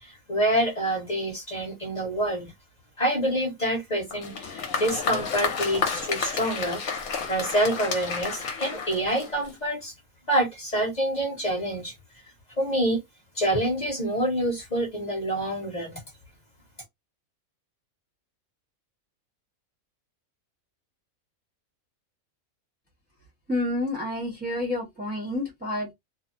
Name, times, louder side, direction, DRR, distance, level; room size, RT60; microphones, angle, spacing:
voice 1, 0.0-2.5 3.0-7.0 7.3-9.9 10.3-11.9 12.6-13.0 13.3-16.0, right 1 dB, 35° left, 1.0 m, -27 dB
Applause, 4.1-9.7, left 5 dB, 70° left, 1.1 m, -31 dB
voice 2, 23.5-25.9, left 1 dB, 10° right, 0.8 m, -29 dB
2.7 x 2.0 x 2.5 m
omnidirectional pair, 1.5 m